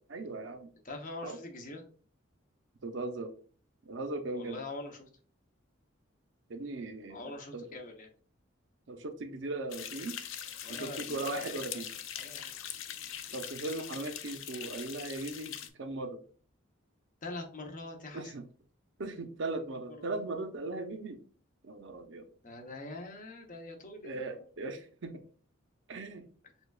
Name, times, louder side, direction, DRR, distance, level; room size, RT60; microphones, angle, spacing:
voice 1, 0.1-0.7 1.2-1.4 2.8-3.3 3.8-4.6 6.5-7.8 8.9-10.2 10.7-11.9 13.3-16.2 18.1-18.4 19.0-21.2 21.6-22.3 24.0-25.2 25.9-26.3, right 2 dB, 60° right, 7 dB, 0.6 m, -38 dB
voice 2, 0.8-1.8 4.3-5.1 7.1-8.1 10.6-11.9 12.2-12.5 17.2-18.3 20.0-20.1 22.4-24.2, left 2 dB, 40° left, 3 dB, 0.8 m, -43 dB
sound 1, 9.7-15.7, left 10 dB, 75° left, 0.4 m, -42 dB
6.7 x 2.3 x 2.3 m, 0.42 s
head